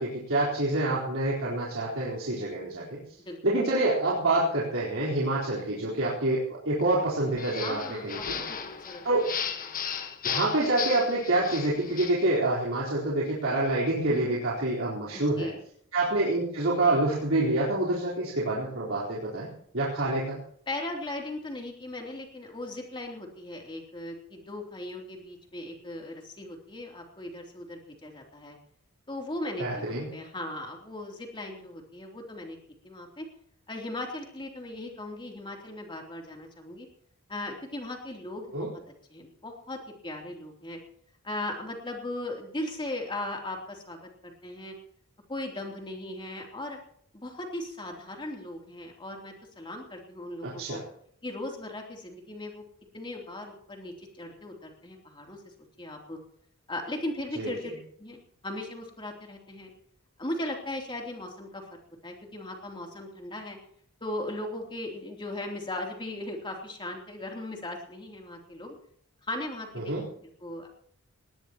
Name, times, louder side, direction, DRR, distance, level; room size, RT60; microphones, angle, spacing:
voice 1, 0.0-3.0 3.4-8.3 9.0-9.2 10.2-15.5 15.9-19.5 19.7-20.4 29.6-30.1 38.5-38.7 50.4-50.8 57.4-57.5 69.8-70.0, right 2 dB, 60° right, -6 dB, 4.2 m, -27 dB
sound 1, 7.4-12.2, left 7 dB, 40° left, 1.4 m, -35 dB
voice 2, 7.6-8.4 8.8-9.1 15.1-15.6 20.7-28.6 29.1-32.6 32.8-33.3 33.7-36.9 37.3-38.7 39.1-40.8 41.2-44.7 45.3-46.8 47.1-50.8 51.2-52.6 52.9-55.4 55.8-56.2 56.7-57.7 58.0-59.7 60.2-61.6 62.0-63.6 64.0-68.7 69.2-69.9 70.4-70.7, left 1 dB, 20° left, 1 dB, 3.2 m, -38 dB
19.5 x 18.0 x 3.0 m, 0.63 s
head